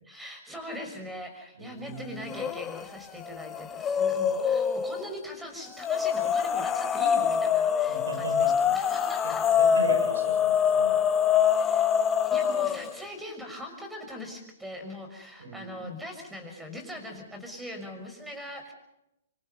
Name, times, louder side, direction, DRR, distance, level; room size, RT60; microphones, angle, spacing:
voice 1, 0.0-9.5 11.5-18.7, left 1 dB, 5° right, 4 dB, 6.0 m, -41 dB
voice 2, 1.6-2.4 7.9-8.8 9.2-11.0 15.4-15.9, right 3 dB, 80° right, 6 dB, 7.0 m, -38 dB
sound 1, 2.3-2.9 3.2-5.0 5.8-13.0, left 8 dB, 20° left, 1.1 m, -25 dB
26.5 x 25.0 x 5.5 m, 0.84 s
hypercardioid pair, 130°, 0 cm